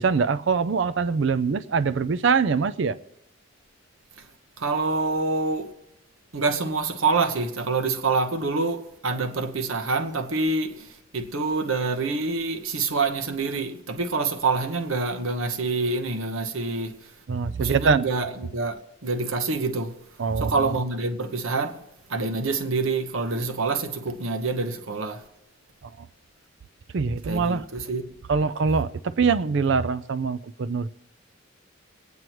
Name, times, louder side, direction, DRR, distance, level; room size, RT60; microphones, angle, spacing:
voice 1, 0.0-3.0 17.3-18.1 20.2-20.5 26.0-26.1 26.9-27.6 28.3-30.9, right 5 dB, 60° right, 0.4 m, -23 dB
voice 2, 4.6-5.7 6.3-17.1 17.6-20.0 20.4-21.8 22.1-25.3 27.2-28.2, right 3 dB, 75° right, 1.1 m, -26 dB
26.0 x 9.5 x 3.0 m
head